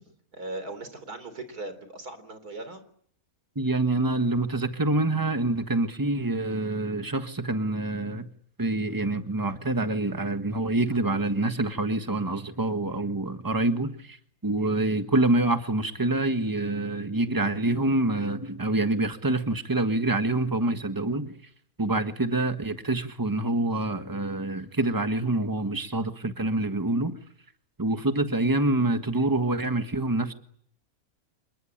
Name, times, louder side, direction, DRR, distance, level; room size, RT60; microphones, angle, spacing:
voice 1, 0.3-2.8, right 2 dB, 90° right, 11 dB, 4.2 m, -38 dB
voice 2, 3.5-8.3 8.6-14.2 14.4-21.3 21.8-27.2 27.8-30.3, right 2 dB, 15° right, 8 dB, 1.5 m, -26 dB
27.0 x 22.0 x 8.9 m, 0.65 s
omnidirectional pair, 1.6 m